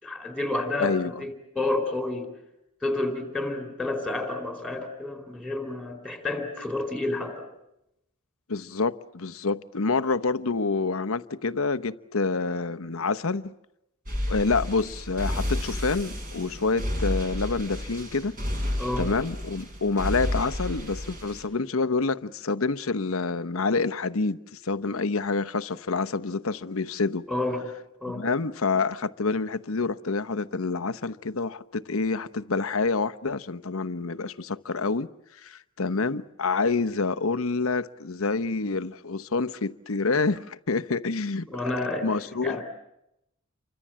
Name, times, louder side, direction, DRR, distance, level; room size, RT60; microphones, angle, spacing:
voice 1, 0.0-2.3 2.8-7.5 18.8-19.1 27.3-27.7 28.0-28.3 41.5-42.1 42.4-42.6, left 2 dB, 5° right, 4.1 m, -30 dB
voice 2, 0.8-1.2 8.5-13.5 14.3-18.4 19.0-27.3 28.1-35.1 35.4-41.6 42.0-42.6, left 4 dB, 70° left, 0.9 m, -27 dB
sound 1, 14.1-21.4, left 1 dB, 40° right, 6.3 m, -31 dB
29.0 x 24.5 x 7.5 m
head